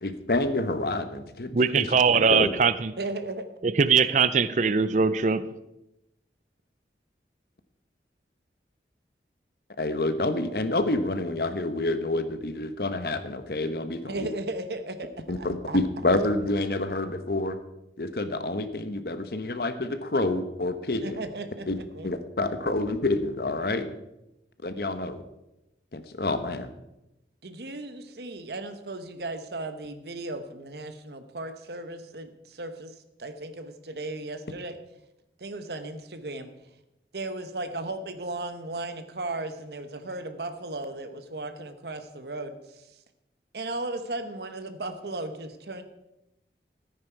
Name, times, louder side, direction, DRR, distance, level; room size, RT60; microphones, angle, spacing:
voice 1, 0.0-2.5 9.8-14.3 15.3-17.6 18.0-21.2 21.7-21.8 22.0-23.9 24.6-25.2 25.9-26.7, left 2 dB, 60° left, 10 dB, 1.0 m, -28 dB
voice 2, 1.5-2.9 3.6-5.4, right 5 dB, 45° right, 15 dB, 0.5 m, -21 dB
voice 3, 3.0-3.4 14.0-15.1 15.4-16.0 21.0-21.7 21.9-22.1 27.4-32.9 33.2-34.8 35.4-36.5 37.1-43.0 43.5-45.8, right 2 dB, 70° right, 8 dB, 1.0 m, -36 dB
14.0 x 9.5 x 4.6 m, 0.90 s
head